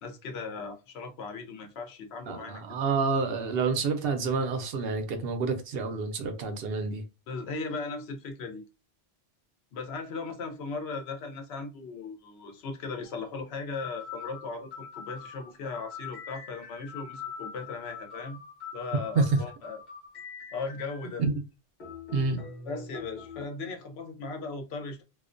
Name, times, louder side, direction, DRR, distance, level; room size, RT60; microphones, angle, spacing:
voice 1, 0.0-2.7 7.3-8.6 9.7-18.4 18.7-19.8 20.5-21.2 22.6-25.0, left 4 dB, 80° left, 0.9 m, -37 dB
voice 2, 2.3-7.0 19.2-19.4 21.2-21.3 22.1-22.4, right 4 dB, 70° right, 0.8 m, -28 dB
sound 1, 13.1-13.2 13.7-21.3 21.8-23.5, left 6 dB, 50° left, 0.9 m, -43 dB
2.4 x 2.1 x 2.4 m
omnidirectional pair, 1.1 m